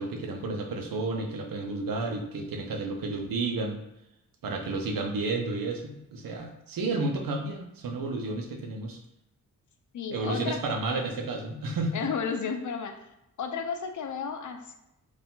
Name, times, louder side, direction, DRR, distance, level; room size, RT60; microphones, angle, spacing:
voice 1, 0.0-3.8 4.4-9.0 10.1-12.1, right 3 dB, 90° right, 3 dB, 0.8 m, -31 dB
voice 2, 9.9-10.6 11.9-13.0 13.4-14.8, left 6 dB, 65° left, 6 dB, 0.6 m, -32 dB
4.6 x 2.5 x 3.7 m, 0.88 s
wide cardioid pair, 160°, 33 cm